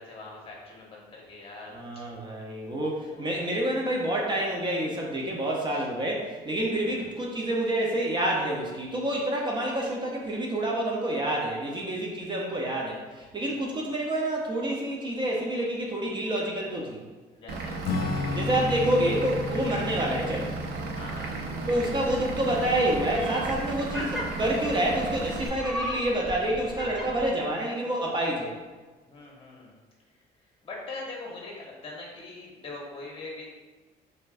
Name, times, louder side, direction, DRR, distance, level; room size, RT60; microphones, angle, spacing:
voice 1, 0.0-1.8 3.1-3.3 5.7-5.8 6.7-7.0 13.3-13.9 17.3-17.8 20.9-21.4 29.1-29.7 30.6-33.4, left 2 dB, 35° left, -3 dB, 1.3 m, -42 dB
voice 2, 1.7-17.0 18.3-20.5 21.7-28.5, right 1 dB, 25° right, -2 dB, 0.7 m, -28 dB
Vehicle / Engine, 17.5-25.5, right 3 dB, 70° right, 0.5 m, -35 dB
Acoustic guitar / Strum, 17.8-23.8, left 4 dB, 65° left, 0.5 m, -35 dB
sound 1, 21.6-27.3, equal, ahead, 0.9 m, -38 dB
4.4 x 3.8 x 2.5 m, 1.3 s
cardioid pair, 110°, 17 cm